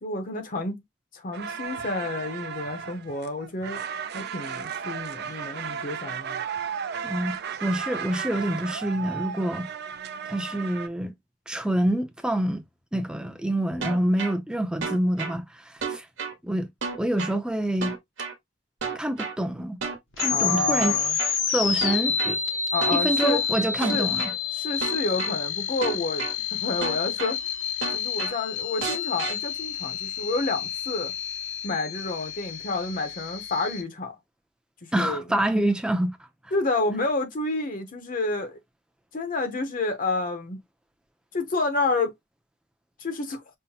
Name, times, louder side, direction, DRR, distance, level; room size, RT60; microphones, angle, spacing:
voice 1, 0.0-0.8 1.1-3.8 4.1-6.4 20.3-21.2 22.7-23.4 23.9-24.1 24.5-27.4 27.9-31.1 31.6-34.1 34.9-35.2 36.5-38.6 39.1-40.6 41.3-42.1 43.0-43.4, left 3 dB, 45° left, 0.7 m, -29 dB
sound 1, 1.3-10.9, right 7 dB, 60° right, 0.4 m, -34 dB
voice 2, 7.0-9.7 10.3-11.1 11.5-12.6 12.9-16.1 16.4-16.7 17.0-18.0 18.9-19.8 20.2-21.0 21.5-22.4 22.9-24.3 34.9-36.2, right 1 dB, 5° right, 0.5 m, -26 dB
sound 2, 13.8-14.3 14.8-15.3 15.8-16.3 16.8-17.3 17.8-18.3 18.8-19.3 19.8-20.3 20.8-21.3 21.8-22.3 22.8-23.3 23.8-24.3 24.8-25.3 25.8-26.3 26.8-27.3 27.8-28.3 28.8-29.3, right 5 dB, 75° right, 1.1 m, -31 dB
sound 3, 20.1-33.8, left 6 dB, 75° left, 0.9 m, -29 dB
5.5 x 2.1 x 2.8 m
head